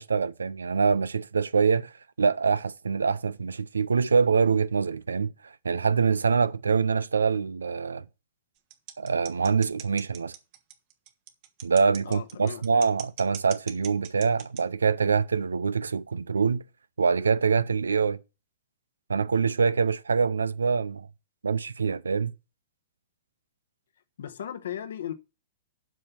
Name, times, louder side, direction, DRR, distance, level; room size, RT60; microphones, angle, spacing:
voice 1, 0.0-1.9 2.2-8.0 9.0-10.3 11.6-16.6 17.0-18.2 19.1-21.1 21.4-22.3, right 5 dB, 90° right, 0.5 m, -25 dB
sound 1, 8.7-14.6, right 11 dB, 45° right, 1.3 m, -41 dB
voice 2, 12.0-12.6 24.2-25.1, left 10 dB, 70° left, 1.1 m, -36 dB
7.6 x 5.5 x 7.0 m
hypercardioid pair, 120°, 0 cm